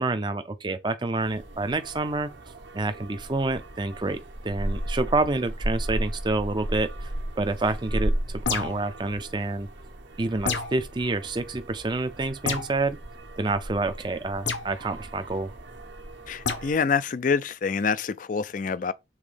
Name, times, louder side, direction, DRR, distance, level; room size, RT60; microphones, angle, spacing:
voice 1, 0.0-2.3 2.7-7.1 7.4-9.7 10.2-13.0 13.4-15.5, right 2 dB, 25° right, 0.5 m, -28 dB
sound 1, 1.2-16.8, right 1 dB, 80° right, 1.4 m, -35 dB
sound 2, 8.4-8.9 10.4-10.8 12.5-12.8 14.5-14.7 16.4-16.7, left 5 dB, 80° left, 1.3 m, -28 dB
voice 2, 16.3-18.9, left 5 dB, 45° left, 0.4 m, -26 dB
7.1 x 3.7 x 5.0 m
head